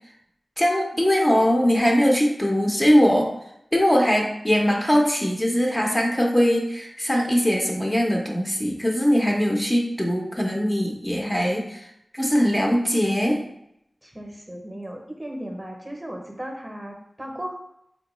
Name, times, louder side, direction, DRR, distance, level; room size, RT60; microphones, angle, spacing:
voice 1, 0.6-3.3 3.7-11.8 12.1-13.4, equal, 20° left, -1 dB, 0.5 m, -21 dB
voice 2, 11.2-11.5 14.0-17.6, equal, 20° right, 1 dB, 0.7 m, -36 dB
3.7 x 2.2 x 3.0 m, 0.78 s
cardioid pair, 45°, 0 cm